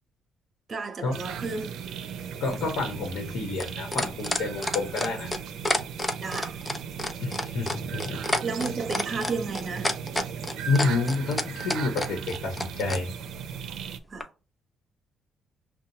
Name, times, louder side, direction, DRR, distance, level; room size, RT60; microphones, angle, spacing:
voice 1, 0.7-1.8 6.2-6.6 8.4-9.9 14.1-14.3, right 4 dB, 40° right, 1.0 m, -32 dB
sound 1, 1.1-14.0, right 7 dB, 80° right, 0.5 m, -37 dB
voice 2, 2.4-5.3 7.2-8.2 10.7-13.1, left 3 dB, 85° left, 1.1 m, -29 dB
sound 2, 2.5-13.0 14.2-14.3, left 1 dB, 20° left, 0.7 m, -29 dB
5.4 x 2.3 x 2.9 m
cardioid pair, 90°, 0 cm